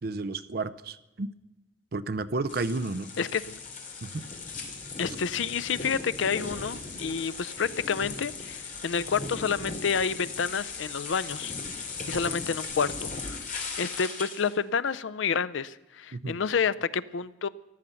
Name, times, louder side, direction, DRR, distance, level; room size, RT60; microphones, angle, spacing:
voice 1, 0.0-1.3 1.9-3.1 4.0-4.2 16.1-16.4, right 3 dB, 50° right, 13 dB, 0.5 m, -32 dB
sound 1, 2.5-14.5, left 4 dB, 40° left, 2.6 m, -38 dB
voice 2, 3.2-3.6 5.0-11.6 12.1-13.4 13.8-17.5, left 6 dB, 70° left, 16 dB, 0.5 m, -29 dB
14.5 x 12.0 x 7.0 m, 1.0 s
head